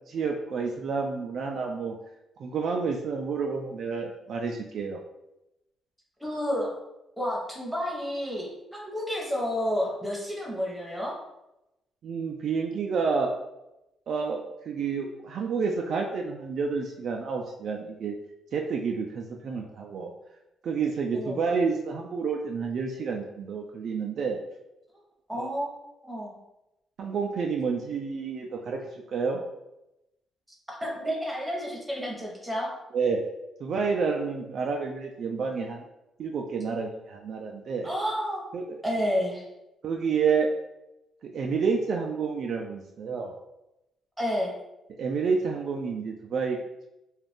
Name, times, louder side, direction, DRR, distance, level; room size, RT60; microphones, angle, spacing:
voice 1, 0.1-2.0 2.4-5.0 12.0-13.3 14.1-14.4 14.7-18.2 18.5-20.1 20.6-24.4 25.3-25.5 27.0-29.4 32.9-33.2 33.6-35.8 36.2-37.9 38.5-38.8 39.8-40.5 41.2-43.3 45.0-46.6, right 5 dB, 60° right, 1 dB, 0.3 m, -29 dB
voice 2, 6.2-6.7 7.2-11.2 21.1-21.4 25.3-26.4 30.7-32.7 37.8-38.4 38.8-39.5 44.2-44.5, equal, 5° right, -2 dB, 0.9 m, -30 dB
2.5 x 2.3 x 3.4 m, 0.91 s
cardioid pair, 90°, 0 cm